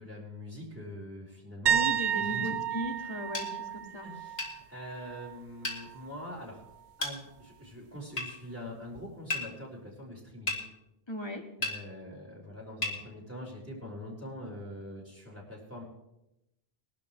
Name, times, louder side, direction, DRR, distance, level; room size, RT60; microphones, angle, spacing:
voice 1, 0.0-2.5 4.0-6.6 7.0-10.6 11.6-15.8, left 1 dB, 15° right, -2 dB, 5.0 m, -44 dB
voice 2, 1.7-4.1 11.1-11.4, equal, 25° left, 2 dB, 2.0 m, -37 dB
sound 1, 1.7-5.4 5.7-6.1 9.0-9.1, right 9 dB, 55° right, 0.7 m, -32 dB
sound 2, 3.3-3.5 4.4-4.6 5.6-5.8 7.0-7.2 8.2-8.3 9.3-9.5 10.5-10.6 11.6-11.8 12.8-13.0, left 2 dB, 90° left, 2.8 m, -32 dB
22.5 x 12.0 x 3.3 m, 0.89 s
omnidirectional pair, 1.0 m